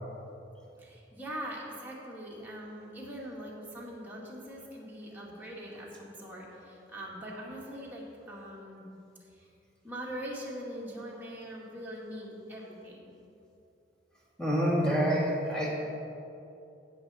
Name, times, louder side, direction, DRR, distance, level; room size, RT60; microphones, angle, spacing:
voice 1, 0.8-8.9 9.3-9.5 9.8-13.1, equal, 10° right, -5 dB, 2.0 m, -42 dB
voice 2, 14.4-15.7, equal, 5° left, -5 dB, 2.2 m, -27 dB
16.5 x 6.5 x 4.2 m, 2.7 s
head